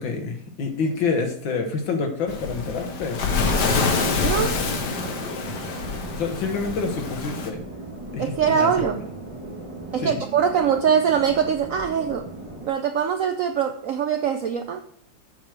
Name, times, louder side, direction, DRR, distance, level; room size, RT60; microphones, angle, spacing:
voice 1, 0.0-3.3 6.1-7.6 8.1-8.7 10.0-10.2, left 4 dB, 85° left, 4 dB, 2.1 m, -27 dB
Waves surf, 2.3-7.5, left 4 dB, 65° left, 1.7 m, -26 dB
sound 1, 3.3-12.7, right 2 dB, 20° right, 1.4 m, -38 dB
voice 2, 4.2-4.6 8.2-9.1 9.9-12.3 12.7-14.8, right 7 dB, 75° right, 7 dB, 0.7 m, -22 dB
8.2 x 5.0 x 6.3 m, 0.63 s
omnidirectional pair, 2.1 m